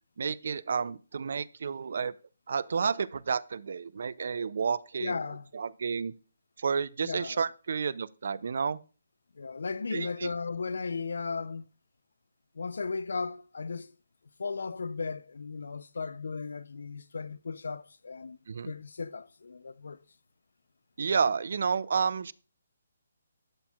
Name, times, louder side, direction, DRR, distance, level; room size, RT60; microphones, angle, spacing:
voice 1, 0.2-2.1 2.5-5.2 5.5-6.1 6.6-8.8 9.9-10.3 18.5-18.7 21.0-22.3, right 6 dB, 45° right, 0.3 m, -30 dB
voice 2, 5.0-5.5 7.0-7.4 9.4-11.6 12.5-13.9 14.4-18.4 18.7-20.0, left 4 dB, 65° left, 0.4 m, -36 dB
13.0 x 4.4 x 2.3 m
hypercardioid pair, 180°, 0 cm